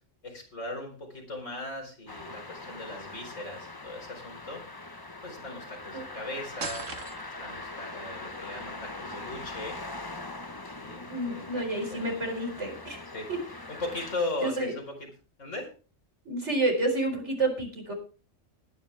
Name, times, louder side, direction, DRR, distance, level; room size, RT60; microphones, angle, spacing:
voice 1, 0.2-6.9 7.4-9.8 10.8-12.5 13.1-13.3 13.7-15.0 15.4-15.7, left 2 dB, 80° left, 2 dB, 4.8 m, -38 dB
sound 1, 2.1-14.2, left 2 dB, 20° left, 0.9 m, -42 dB
sound 2, 6.6-7.5, right 4 dB, 80° right, 1.9 m, -37 dB
voice 2, 11.1-13.0 13.3-13.4 14.4-14.7 16.2-17.9, right 2 dB, 65° right, 3 dB, 4.8 m, -29 dB
20.0 x 10.0 x 3.4 m, 0.35 s
omnidirectional pair, 1.3 m